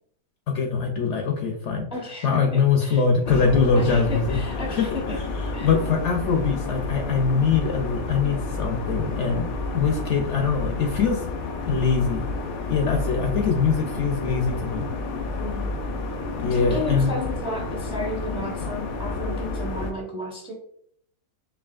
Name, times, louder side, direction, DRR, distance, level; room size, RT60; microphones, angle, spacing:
voice 1, 0.5-1.9 2.2-4.4 4.7-9.5 9.7-11.2 11.7-12.2 12.7-14.9 16.4-17.1, left 5 dB, 65° left, 2 dB, 0.8 m, -23 dB
voice 2, 1.9-2.4 2.8-3.4 3.7-5.2 5.5-5.7 15.4-15.8 16.4-20.5, left 1 dB, 5° right, -1 dB, 0.7 m, -33 dB
sound 1, 3.2-19.9, left 3 dB, 85° left, 1.1 m, -30 dB
4.8 x 2.8 x 2.4 m, 0.65 s
omnidirectional pair, 1.5 m